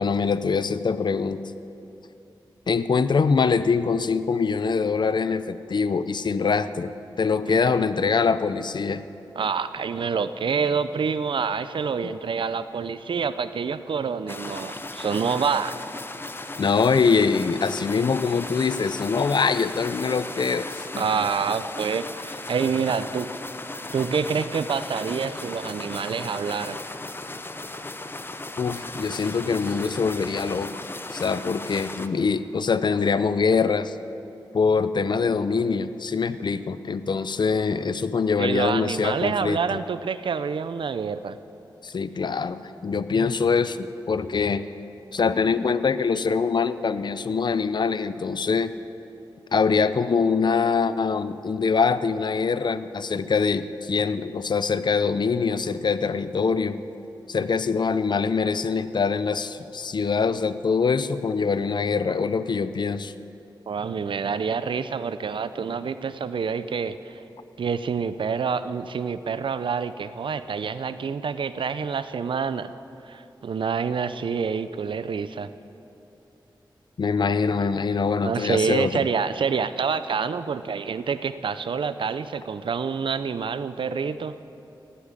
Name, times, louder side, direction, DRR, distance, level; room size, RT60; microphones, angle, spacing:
voice 1, 0.0-1.4 2.7-6.9 7.2-9.0 12.0-12.1 16.6-21.0 28.6-30.8 31.1-34.0 34.5-39.6 41.8-44.6 45.1-48.7 49.5-56.8 57.3-63.1 77.0-79.1, left 5 dB, 60° left, 13 dB, 0.6 m, -24 dB
voice 2, 7.5-7.8 9.4-15.7 21.0-23.3 23.9-26.8 38.4-41.4 63.7-67.2 67.6-72.7 73.1-75.5 78.2-84.4, right 6 dB, 80° right, 13 dB, 0.6 m, -27 dB
sound 1, 14.3-32.1, left 2 dB, 25° left, 0.8 m, -36 dB
16.5 x 8.6 x 10.0 m, 2.9 s
wide cardioid pair, 85°, 8 cm